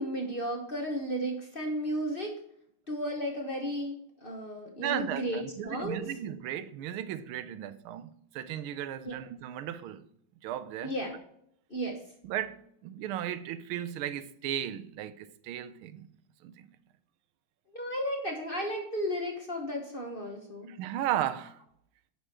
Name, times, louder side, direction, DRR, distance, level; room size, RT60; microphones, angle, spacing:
voice 1, 0.0-2.3 2.9-6.0 9.0-9.2 10.8-11.1 11.7-12.0 17.7-20.7, equal, 35° left, 1.1 m, -34 dB
voice 2, 4.8-10.0 10.4-10.9 12.2-16.1 16.4-16.7 20.7-21.6, right 11 dB, 90° right, 1.5 m, -35 dB
10.0 x 4.2 x 6.2 m
omnidirectional pair, 2.3 m